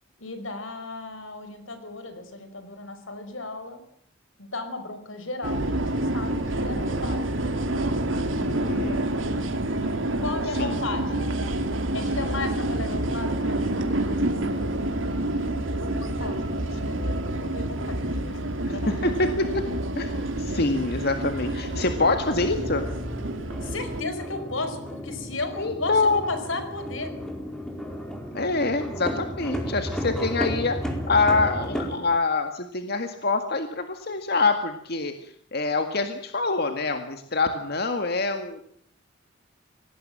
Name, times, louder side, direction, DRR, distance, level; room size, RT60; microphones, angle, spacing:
voice 1, 0.2-3.8 4.4-7.3 10.2-11.3 11.9-14.7 15.8-19.0 23.6-27.1, left 3 dB, 85° left, 9 dB, 5.2 m, -35 dB
sound 1, 5.4-24.0, right 1 dB, 80° right, 2.9 m, -28 dB
voice 2, 8.4-9.0 10.6-10.8 18.7-19.6 20.0-22.9 25.6-26.2 28.3-38.6, left 3 dB, 55° left, 6 dB, 1.9 m, -25 dB
sound 2, 15.7-32.0, equal, 5° left, 4.5 m, -35 dB
26.0 x 18.5 x 7.7 m, 0.65 s
head